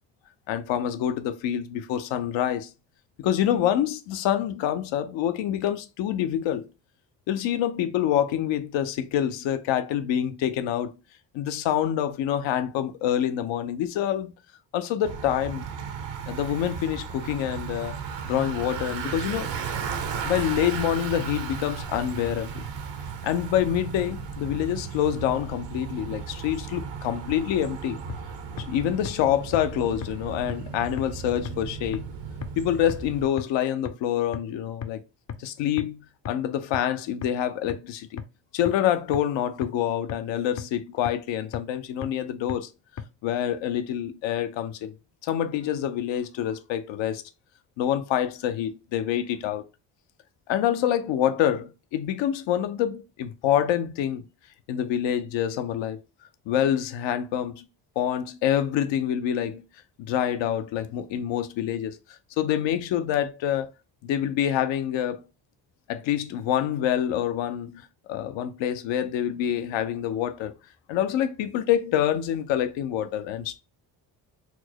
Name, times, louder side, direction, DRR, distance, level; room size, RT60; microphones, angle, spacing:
voice 1, 0.5-2.7 3.2-6.7 7.3-10.9 11.3-14.3 14.7-15.6 16.3-18.0 18.2-19.5 20.2-22.7 23.2-28.0 28.6-32.1 32.6-35.0 35.4-38.2 38.5-42.7 43.2-44.9 45.2-47.2 47.8-49.7 50.5-54.2 54.7-56.0 56.5-57.7 58.0-59.6 60.0-63.7 64.0-65.2 65.9-70.6 70.9-73.6, left 10 dB, 80° left, 0.6 m, -26 dB
Bicycle, 15.0-33.3, right 6 dB, 70° right, 0.8 m, -35 dB
sound 1, 28.1-28.2 28.6-28.7 29.1-29.2 29.5-29.6 30.0-30.1 30.5-30.6 31.0-31.1 31.5-31.6 31.9-32.0 32.4-32.5 32.9-33.0 33.4-33.5 33.9-34.0 34.3-34.4 34.8-34.9 35.3-35.4 35.8-35.9 36.3-36.4 36.7-36.8 37.2-37.3 37.7-37.8 38.2-38.3 38.7-38.8 39.1-39.2 39.6-39.7 40.1-40.2 40.6-40.7 41.1-41.2 41.5-41.6 42.0-42.1 42.5-42.6 43.0-43.1, left 7 dB, 40° left, 0.5 m, -33 dB
4.3 x 2.0 x 2.8 m
supercardioid pair, 70°, 44 cm